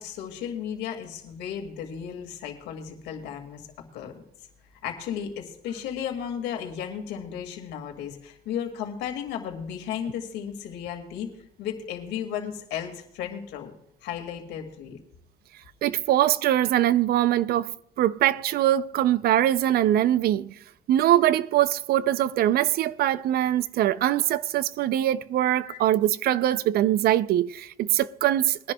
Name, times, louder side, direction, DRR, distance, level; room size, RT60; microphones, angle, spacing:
voice 1, 0.0-3.7 3.9-4.1 4.8-11.3 11.6-13.7 14.0-15.0 25.6-25.8, left 8 dB, 85° left, 2.1 m, -34 dB
voice 2, 15.8-20.5 20.9-28.7, right 12 dB, 65° right, 0.5 m, -23 dB
21.5 x 11.0 x 2.3 m
cardioid pair, 110°, 17 cm